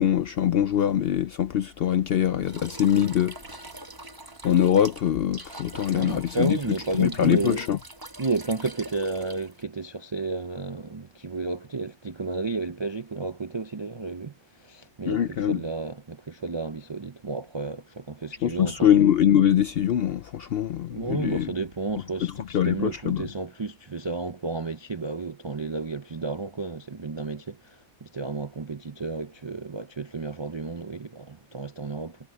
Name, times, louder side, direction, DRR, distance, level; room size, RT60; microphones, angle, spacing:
voice 1, 0.0-3.4 4.4-6.6 6.9-7.8 15.1-15.6 18.4-21.5 22.2-23.3, left 10 dB, 65° left, 0.6 m, -23 dB
sound 1, 2.4-9.6, right 2 dB, 20° right, 0.9 m, -43 dB
voice 2, 5.9-7.6 8.2-18.9 20.9-32.2, right 3 dB, 45° right, 0.3 m, -32 dB
omnidirectional pair, 1.4 m